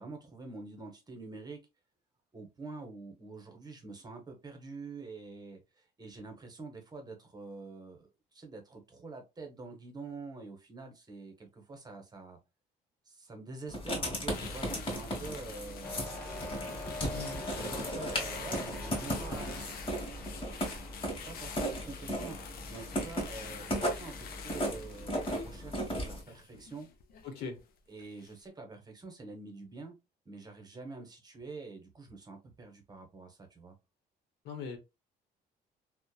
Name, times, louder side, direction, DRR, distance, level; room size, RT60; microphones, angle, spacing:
voice 1, 0.0-1.6 2.3-12.4 13.1-16.1 16.9-19.6 20.5-20.7 21.3-26.9 27.9-29.9 30.2-33.7, right 3 dB, 25° right, 0.8 m, -46 dB
Writing, 13.7-26.2, equal, 30° left, 1.3 m, -36 dB
sound 1, 14.3-27.6 28.0-28.3, left 7 dB, 60° left, 0.5 m, -47 dB
sound 2, 15.8-21.0, left 1 dB, 10° left, 0.7 m, -43 dB
voice 2, 27.2-27.6 34.4-34.8, left 5 dB, 80° left, 0.9 m, -40 dB
2.8 x 2.1 x 2.2 m
cardioid pair, 110°, 17 cm